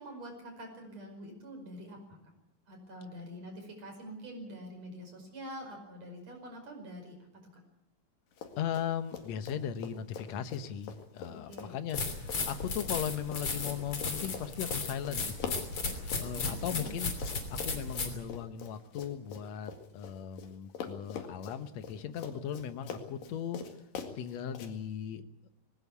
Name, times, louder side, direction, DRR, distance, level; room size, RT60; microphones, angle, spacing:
voice 1, 0.0-2.2 2.7-7.2 11.3-11.8 16.3-16.9, equal, 50° right, 3 dB, 6.5 m, -46 dB
Run, 8.3-8.9 9.1-20.5 20.8-24.7, left 6 dB, 80° left, 3.8 m, -44 dB
voice 2, 8.6-15.6 16.2-17.1 17.5-23.6 24.2-25.2, left 9 dB, 60° left, 10 dB, 2.1 m, -38 dB
sound 1, 11.9-18.2, left 4 dB, 40° left, 3.9 m, -35 dB
20.5 x 18.0 x 8.4 m, 0.86 s
omnidirectional pair, 3.9 m